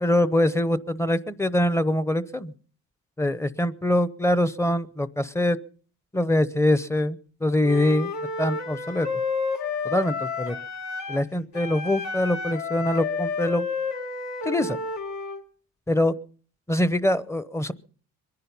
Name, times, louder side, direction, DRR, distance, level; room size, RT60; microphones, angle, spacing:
voice 1, 0.0-2.5 3.2-5.6 6.1-8.1 8.4-9.1 9.9-10.6 11.1-13.7 14.4-14.8 15.9-16.1 16.7-17.7, left 1 dB, 10° left, 16 dB, 0.8 m, -24 dB
Wind instrument woodwind instrument, 7.6-11.3 11.5-15.4, left 4 dB, 70° left, 2.5 m, -30 dB
23.0 x 10.5 x 5.5 m, 0.43 s
cardioid pair, 90°, 30 cm